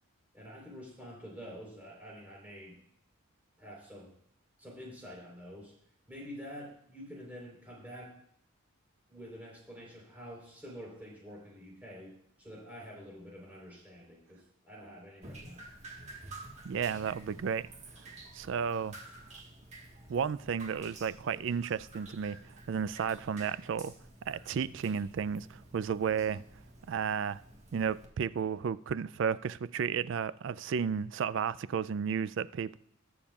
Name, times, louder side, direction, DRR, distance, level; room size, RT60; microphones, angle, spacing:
voice 1, 0.3-2.8 3.6-4.1 4.6-5.7 6.1-8.1 9.1-15.7, equal, 10° right, 3.8 m, -48 dB
Drip, 15.2-28.1, right 2 dB, 35° right, 1.4 m, -51 dB
voice 2, 16.6-17.7 18.3-19.0 20.1-23.9 24.3-26.4 26.9-27.4 27.7-32.8, right 7 dB, 60° right, 0.3 m, -33 dB
20.5 x 7.0 x 2.4 m
head